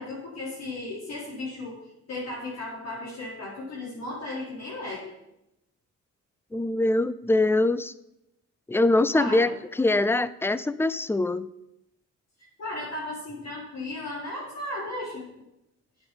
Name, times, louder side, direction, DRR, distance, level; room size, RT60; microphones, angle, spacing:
voice 1, 0.0-5.0 9.1-9.5 12.6-15.2, left 2 dB, 55° left, -6 dB, 4.4 m, -35 dB
voice 2, 6.5-7.9 8.7-11.5, left 2 dB, 10° left, 16 dB, 0.5 m, -23 dB
9.2 x 8.1 x 7.0 m, 0.86 s
cardioid pair, 90°, 30 cm